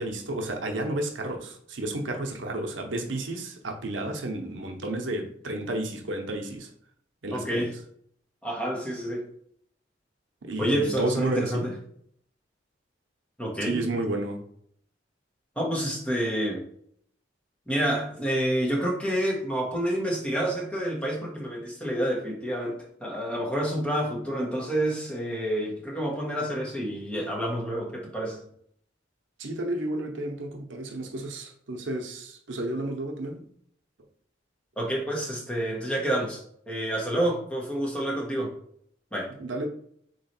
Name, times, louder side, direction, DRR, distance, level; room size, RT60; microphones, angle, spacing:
voice 1, 0.0-6.7 7.2-7.7 10.4-11.7 13.6-14.4 29.4-33.4 39.4-39.7, right 1 dB, 80° right, 4 dB, 0.8 m, -31 dB
voice 2, 7.3-7.7 8.4-9.2 10.6-11.7 13.4-13.8 15.6-16.6 17.7-28.4 34.8-38.5 39.1-39.3, right 1 dB, 5° left, -2 dB, 1.2 m, -28 dB
3.9 x 3.1 x 4.3 m, 0.65 s
head